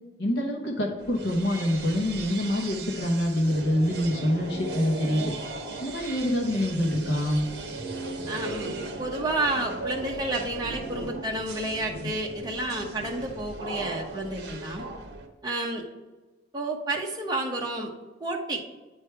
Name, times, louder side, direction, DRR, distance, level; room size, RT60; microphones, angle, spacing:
voice 1, 0.2-5.3 5.8-7.5, left 1 dB, 60° left, 1 dB, 1.1 m, -26 dB
sound 1, 1.0-15.3, right 2 dB, 60° right, 1.0 m, -37 dB
voice 2, 8.3-8.7 9.0-14.8 15.4-15.8 16.5-17.9 18.2-18.6, right 2 dB, 20° right, 0 dB, 1.0 m, -30 dB
9.1 x 3.4 x 4.5 m, 1.2 s
head